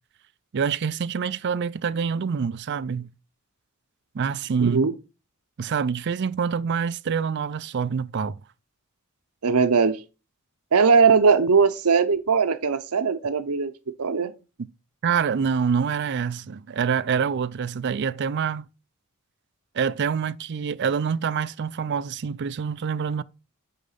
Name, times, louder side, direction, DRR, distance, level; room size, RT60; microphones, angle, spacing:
voice 1, 0.5-3.1 4.1-4.8 5.6-8.4 15.0-18.7 19.7-23.2, right 6 dB, 50° right, 0.4 m, -26 dB
voice 2, 4.6-4.9 9.4-10.0 10.7-13.7 14.0-14.3, right 5 dB, 85° right, 0.8 m, -20 dB
6.7 x 5.1 x 5.6 m
head